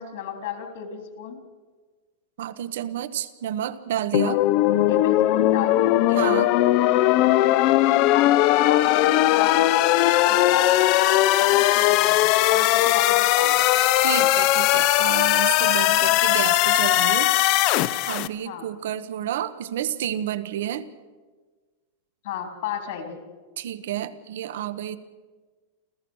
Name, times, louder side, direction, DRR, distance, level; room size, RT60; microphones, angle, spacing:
voice 1, 0.0-1.4 4.9-6.0 8.1-9.8 10.3-10.7 11.4-13.7 14.2-14.3 18.5-18.7 22.2-23.3, left 8 dB, 60° left, 5 dB, 3.5 m, -34 dB
voice 2, 2.4-4.4 6.1-6.5 14.0-17.3 18.1-20.9 23.6-25.0, right 11 dB, 70° right, 14 dB, 1.1 m, -30 dB
sound 1, 4.1-18.3, left 15 dB, 40° left, 0.6 m, -19 dB
28.5 x 15.0 x 6.4 m, 1.4 s
supercardioid pair, 170°, 0 cm